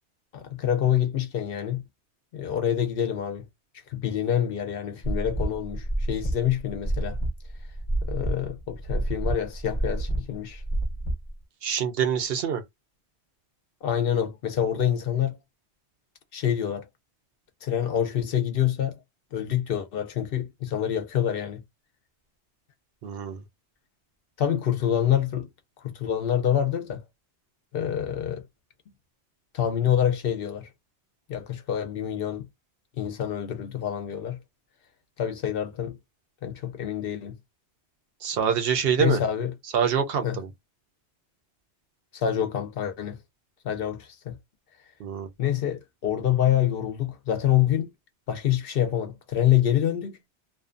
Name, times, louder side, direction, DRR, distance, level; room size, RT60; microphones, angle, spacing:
voice 1, 0.3-1.8 2.3-3.4 3.9-7.2 8.0-10.6 13.8-15.4 16.3-16.9 17.6-19.0 19.3-21.6 24.4-25.5 25.8-27.0 27.7-28.4 29.5-30.7 31.3-32.5 33.0-34.4 35.2-36.0 36.4-37.3 39.0-39.5 40.2-40.4 42.1-43.2 43.6-44.4 45.4-47.9 48.3-50.2, left 10 dB, 60° left, 0.7 m, -26 dB
sound 1, 5.0-11.3, right 1 dB, 30° left, 0.8 m, -29 dB
voice 2, 11.6-12.6 23.0-23.4 38.2-39.2 39.7-40.5 45.0-45.3, right 7 dB, 65° right, 0.7 m, -25 dB
2.5 x 2.2 x 2.4 m
omnidirectional pair, 1.2 m